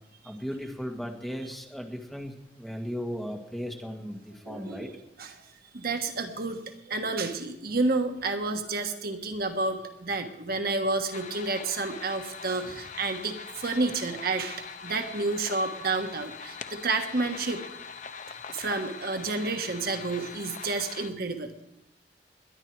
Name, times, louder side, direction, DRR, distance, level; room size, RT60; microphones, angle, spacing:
voice 1, 0.2-4.9, equal, ahead, 1 dB, 1.8 m, -36 dB
voice 2, 4.4-5.4 5.7-6.6 6.9-17.6 18.5-21.5, right 3 dB, 60° right, 5 dB, 1.3 m, -30 dB
sound 1, 11.1-21.1, left 6 dB, 45° left, 0.7 m, -42 dB
21.0 x 10.5 x 4.6 m, 0.84 s
head